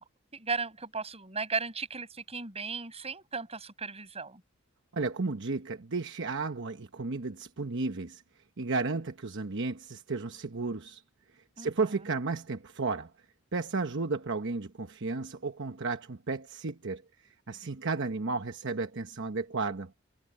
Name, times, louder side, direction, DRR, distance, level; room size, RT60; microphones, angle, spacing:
voice 1, 0.3-4.4 11.6-11.9, right 4 dB, 30° right, 7.3 m, -36 dB
voice 2, 4.9-8.2 8.6-11.0 11.6-13.1 13.5-17.0 17.5-19.9, right 3 dB, 65° right, 1.0 m, -33 dB
head